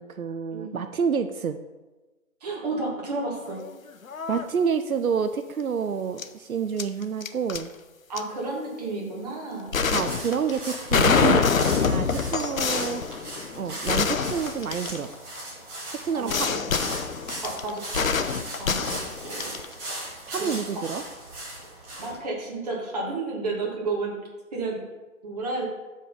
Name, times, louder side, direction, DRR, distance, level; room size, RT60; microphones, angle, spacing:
voice 1, 0.0-1.6 4.3-7.7 9.9-13.0 13.6-15.1 16.0-16.5 20.3-21.0, right 6 dB, 85° right, 9 dB, 0.7 m, -28 dB
voice 2, 2.4-3.6 8.1-9.8 11.0-11.2 16.1-16.6 17.4-18.1 18.6-19.0 19.2-19.6 20.4-20.8 22.0-24.2 24.5-24.8 25.2-25.7, right 3 dB, 30° right, -3 dB, 1.9 m, -32 dB
sound 1, 3.5-3.7 4.0-4.5 6.2-6.3 6.8-7.6 8.2-8.3 9.7-15.4 16.3-19.7, left 5 dB, 70° left, 0.7 m, -25 dB
sound 2, 9.9-22.2, right 1 dB, 10° right, 1.5 m, -38 dB
6.5 x 5.2 x 5.6 m, 1.2 s
figure-of-eight pair, 160°, 42 cm